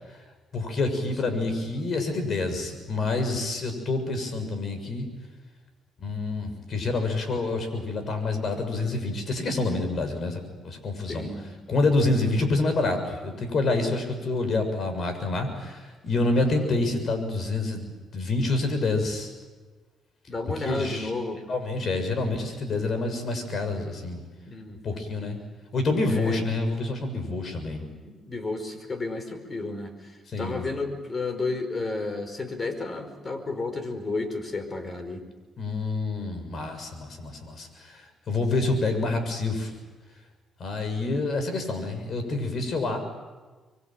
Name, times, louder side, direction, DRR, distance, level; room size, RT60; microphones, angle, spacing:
voice 1, 0.5-5.1 6.0-11.3 11.7-19.3 20.6-21.1 21.5-24.2 24.8-25.4 25.7-27.9 30.3-30.7 35.6-38.0 38.3-39.7 40.6-43.0, left 2 dB, 55° left, 7 dB, 6.7 m, -27 dB
voice 2, 11.1-11.5 12.1-12.2 20.3-21.4 21.8-22.3 24.5-25.0 26.1-26.5 28.0-35.2, left 3 dB, 30° left, 8 dB, 5.0 m, -32 dB
25.5 x 23.0 x 9.1 m, 1.3 s
cardioid pair, 90°, 0 cm